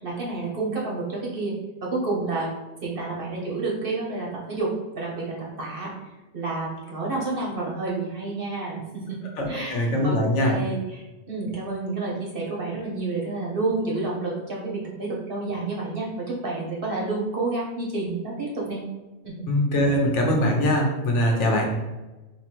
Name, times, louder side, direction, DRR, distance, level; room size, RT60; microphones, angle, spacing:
voice 1, 0.0-1.5 1.8-2.5 2.8-4.7 4.9-5.9 6.3-9.0 9.5-18.8 19.2-19.4 21.5-21.7, right 3 dB, 50° right, -3 dB, 1.1 m, -29 dB
voice 2, 9.4-10.6 19.5-21.7, left 1 dB, 70° left, 1 dB, 1.1 m, -22 dB
3.3 x 3.0 x 4.3 m, 1.1 s
omnidirectional pair, 1.3 m